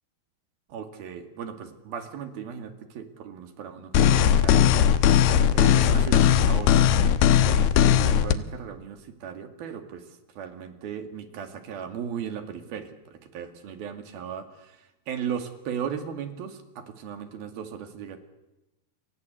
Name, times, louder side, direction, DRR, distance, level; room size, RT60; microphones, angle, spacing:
voice 1, 0.7-4.6 5.5-7.0 7.3-18.2, right 8 dB, 65° right, 8 dB, 4.0 m, -37 dB
sound 1, 3.9-8.3, left 9 dB, 75° left, 3.0 m, -19 dB
29.5 x 25.0 x 8.1 m, 1.0 s
omnidirectional pair, 4.7 m